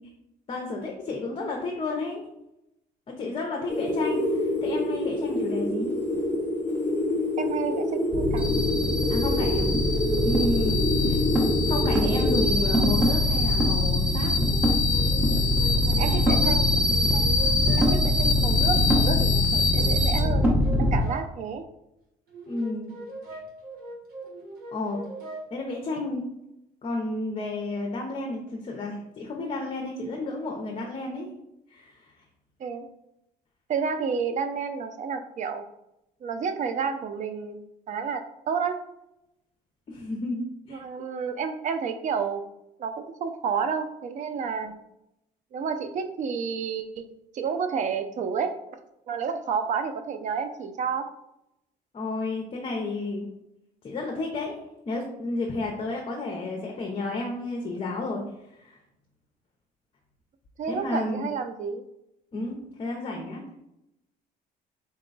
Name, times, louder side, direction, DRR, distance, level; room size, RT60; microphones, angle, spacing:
voice 1, 0.5-2.3 3.1-5.9 9.1-9.7 10.2-11.2 11.7-14.3 16.1-16.6 22.5-22.9 24.7-25.0 25.5-26.2 26.8-31.3 31.7-32.1 39.9-40.8 51.9-53.3 53.8-54.6 54.9-58.2 58.5-58.8 60.7-61.3 62.3-63.4, left 2 dB, 35° left, 0 dB, 0.7 m, -31 dB
sound 1, 3.7-12.5, left 1 dB, 15° left, 1.2 m, -27 dB
voice 2, 7.4-8.5 15.8-16.9 17.1-17.2 17.8-21.6 32.6-32.9 33.7-35.6 36.2-38.8 40.7-42.4 42.8-44.7 45.5-47.1 47.3-48.5 49.1-51.1 60.6-61.8, right 6 dB, 45° right, 8 dB, 0.5 m, -30 dB
sound 2, 8.1-21.0, left 2 dB, 5° right, 0.9 m, -22 dB
sound 3, 14.3-18.0 19.1-19.3 19.7-20.3 20.6-21.2 22.3-25.4, right 2 dB, 65° right, 1.3 m, -40 dB
4.0 x 2.2 x 3.9 m, 0.84 s
cardioid pair, 110°, 17 cm